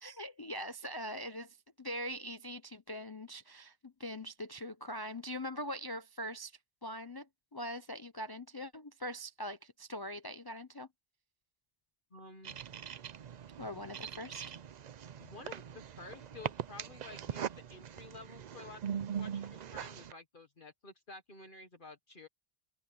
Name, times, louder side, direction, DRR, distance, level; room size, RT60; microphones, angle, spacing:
voice 1, 0.0-10.9 13.6-14.5, equal, 25° left, 0.5 m, -42 dB
voice 2, 12.1-12.6 15.2-22.3, left 3 dB, 50° left, 1.6 m, -52 dB
sound 1, 12.4-20.1, right 8 dB, 50° right, 0.6 m, -42 dB
omnidirectional pair, 1.1 m